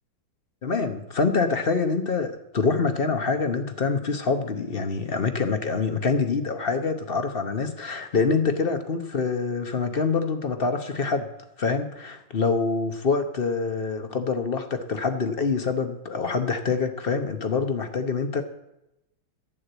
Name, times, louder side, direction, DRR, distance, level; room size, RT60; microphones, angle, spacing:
voice 1, 0.6-11.3 11.6-18.4, left 4 dB, 40° left, 8 dB, 0.9 m, -25 dB
11.5 x 8.5 x 8.0 m, 0.88 s
omnidirectional pair, 2.2 m